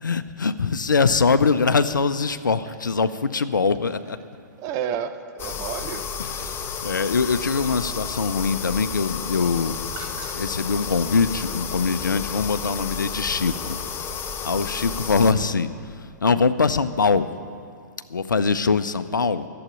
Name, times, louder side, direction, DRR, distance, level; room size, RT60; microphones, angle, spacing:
voice 1, 0.0-4.2 6.2-10.1 10.3-13.8 14.4-15.7 16.2-17.3 18.1-19.5, left 4 dB, 80° left, 13 dB, 0.6 m, -22 dB
voice 2, 4.6-6.1 10.0-10.4, right 8 dB, 30° right, 9 dB, 0.8 m, -31 dB
sound 1, 5.4-15.3, left 6 dB, 20° left, 0.8 m, -32 dB
11.5 x 7.9 x 9.9 m, 2.3 s
figure-of-eight pair, 115°, 10 cm